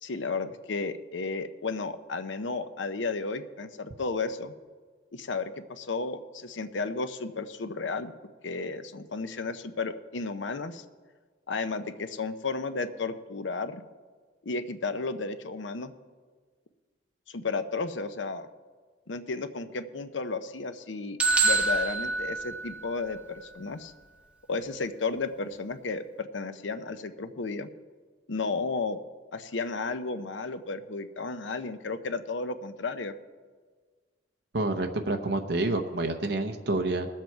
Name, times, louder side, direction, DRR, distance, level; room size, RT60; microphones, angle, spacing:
voice 1, 0.0-4.5 5.1-8.1 8.4-10.8 11.5-13.8 14.4-15.9 17.3-18.5 19.1-21.2 21.4-23.9 24.5-27.7 28.3-29.0 29.3-33.2, left 4 dB, 75° left, 10 dB, 0.7 m, -33 dB
sound 1, 21.2-23.1, right 3 dB, 5° right, 0.9 m, -26 dB
voice 2, 34.5-37.1, right 2 dB, 60° right, 5 dB, 0.8 m, -28 dB
19.5 x 7.5 x 4.5 m, 1.5 s
head